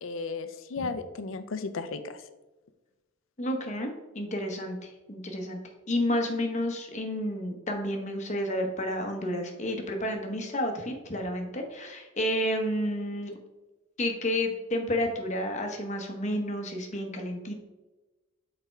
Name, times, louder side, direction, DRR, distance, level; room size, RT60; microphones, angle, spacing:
voice 1, 0.0-2.2, left 4 dB, 70° left, 11 dB, 0.5 m, -35 dB
voice 2, 3.4-3.9 4.1-5.6 5.9-13.3 14.0-17.5, left 1 dB, 35° left, 3 dB, 1.0 m, -30 dB
6.8 x 4.3 x 4.5 m, 1.1 s
head